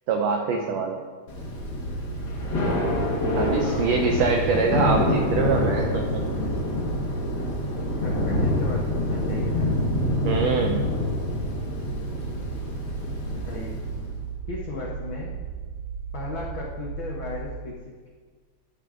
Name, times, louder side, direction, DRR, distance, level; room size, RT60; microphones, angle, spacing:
voice 1, 0.1-1.0 3.4-6.2 10.2-10.9, right 4 dB, 90° right, 3 dB, 1.4 m, -24 dB
Thunder / Rain, 1.3-14.2, left 1 dB, 50° left, 1.3 m, -27 dB
sound 1, 1.6-17.4, right 7 dB, 50° right, 2.3 m, -35 dB
voice 2, 3.6-4.2 8.0-9.7 13.3-13.8 14.5-15.3 16.1-18.1, left 4 dB, 85° left, -2 dB, 1.0 m, -36 dB
12.5 x 9.2 x 2.5 m, 1.5 s
omnidirectional pair, 3.6 m